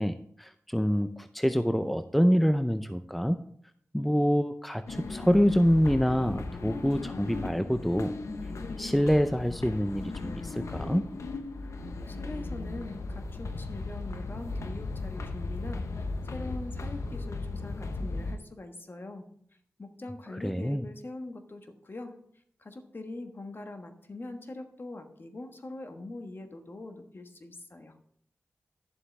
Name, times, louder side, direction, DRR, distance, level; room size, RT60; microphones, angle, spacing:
voice 1, 0.0-3.4 3.9-8.1 8.8-11.0 20.4-20.8, equal, ahead, 9 dB, 0.5 m, -26 dB
sound 1, 4.9-18.4, left 3 dB, 80° left, 0.9 m, -36 dB
voice 2, 11.8-19.3 19.8-22.2 22.6-28.0, left 2 dB, 45° left, 6 dB, 1.3 m, -42 dB
11.0 x 7.2 x 3.4 m, 0.64 s
cardioid pair, 45°, 5 cm